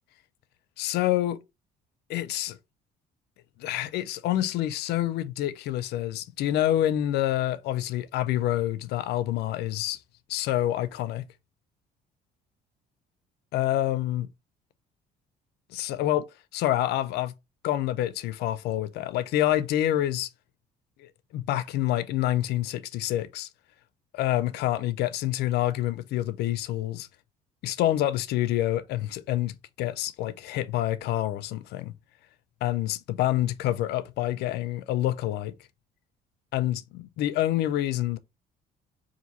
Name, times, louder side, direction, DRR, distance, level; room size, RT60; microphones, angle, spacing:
voice 1, 0.8-1.4 2.1-2.6 3.6-10.0 10.3-11.2 13.5-14.3 15.7-16.3 16.5-17.3 17.6-20.3 21.0-23.5 24.1-27.1 27.6-31.9 32.6-35.5 36.5-38.2, left 13 dB, 75° left, 0.4 m, -27 dB
2.8 x 2.6 x 3.9 m
cardioid pair, 110°, 17 cm